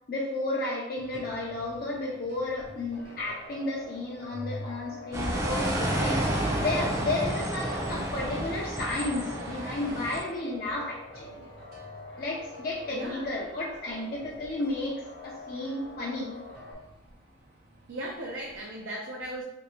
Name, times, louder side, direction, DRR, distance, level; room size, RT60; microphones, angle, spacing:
voice 1, 0.1-6.2 6.6-11.4 12.2-16.4, left 2 dB, 50° left, -3 dB, 0.4 m, -33 dB
sound 1, 0.9-18.8, equal, 50° right, 0.8 m, -50 dB
sound 2, 2.9-16.7, left 1 dB, 65° left, 0.8 m, -46 dB
sound 3, 5.1-10.2, right 1 dB, 15° right, 0.4 m, -30 dB
voice 2, 12.9-13.3 17.9-19.4, right 1 dB, 75° right, -2 dB, 0.5 m, -37 dB
3.0 x 2.6 x 3.0 m, 0.91 s
head